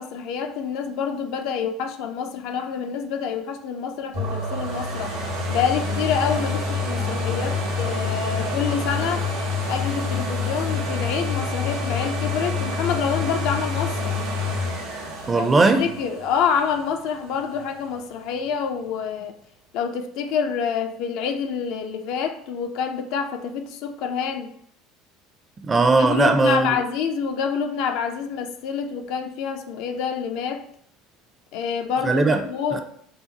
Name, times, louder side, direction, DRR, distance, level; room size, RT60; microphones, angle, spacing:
voice 1, 0.0-5.1 5.5-9.3 9.7-14.2 15.4-15.5 15.8-19.4 19.7-24.5 26.0-30.7 31.5-32.8, left 6 dB, 60° left, 0.3 m, -27 dB
sound 1, 4.1-17.8 18.4-18.5, left 3 dB, 75° right, 0.9 m, -27 dB
voice 2, 15.3-15.9 25.6-26.8 32.0-32.4 32.7-32.8, right 3 dB, 25° right, 0.4 m, -18 dB
2.7 x 2.0 x 3.9 m
hypercardioid pair, 70°, 0 cm